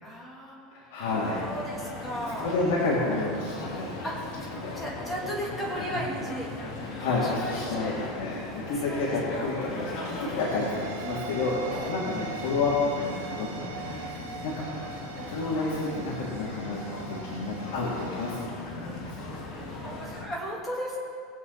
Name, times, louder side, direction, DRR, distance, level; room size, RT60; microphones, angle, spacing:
voice 1, 0.0-1.1 1.4-2.6 4.0-4.5 4.7-6.5 7.0-8.1 8.6-9.5 11.7-11.9 15.1-15.4 19.8-21.0, equal, 10° left, -4 dB, 3.0 m, -36 dB
voice 2, 0.7-1.4 2.3-4.0 4.5-4.7 5.9-6.0 6.8-14.2 14.4-14.7 15.3-16.8 17.1-19.3, left 3 dB, 75° left, -6 dB, 2.9 m, -30 dB
sound 1, 1.0-20.2, left 2 dB, 50° left, 2.6 m, -38 dB
sound 2, 10.4-18.5, right 6 dB, 80° right, 1.1 m, -42 dB
20.0 x 8.0 x 4.2 m, 2.3 s
supercardioid pair, 150°, 0 cm